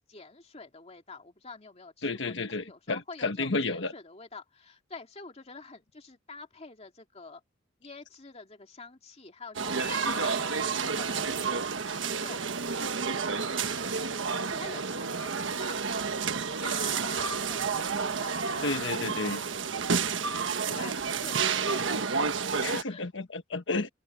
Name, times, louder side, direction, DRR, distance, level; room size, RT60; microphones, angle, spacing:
voice 1, 0.1-7.4 7.8-10.5 10.9-12.4 12.7-13.9 14.4-19.5 20.1-22.2 22.5-23.1, left 4 dB, 35° left, 2.3 m, -47 dB
voice 2, 2.0-3.9 18.6-19.4 20.7-20.9 22.6-23.9, left 3 dB, 70° left, 1.3 m, -32 dB
sound 1, 9.5-22.8, right 5 dB, 80° right, 1.3 m, -30 dB
sound 2, 9.6-14.7 14.9-15.6, right 2 dB, 10° right, 6.1 m, -51 dB
open air
head